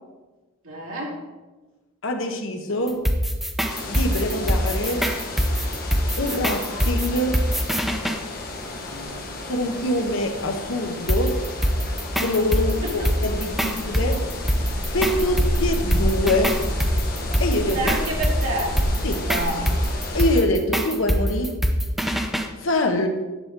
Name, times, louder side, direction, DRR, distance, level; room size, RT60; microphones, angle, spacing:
voice 1, 0.6-1.2 8.9-9.6 12.8-13.1 17.7-18.8 19.2-19.7, right 1 dB, 85° right, -2 dB, 2.5 m, -29 dB
voice 2, 2.0-3.0 3.8-5.1 6.2-7.4 9.4-11.4 12.2-14.3 14.9-16.6 17.4-17.9 19.0-19.2 20.1-21.6 22.6-23.1, left 1 dB, 65° left, 5 dB, 1.0 m, -24 dB
sound 1, 2.9-8.2 11.1-22.5, equal, ahead, 0.6 m, -23 dB
sound 2, 3.7-20.4, left 1 dB, 45° left, 1.4 m, -31 dB
10.5 x 6.0 x 3.8 m, 1.2 s
head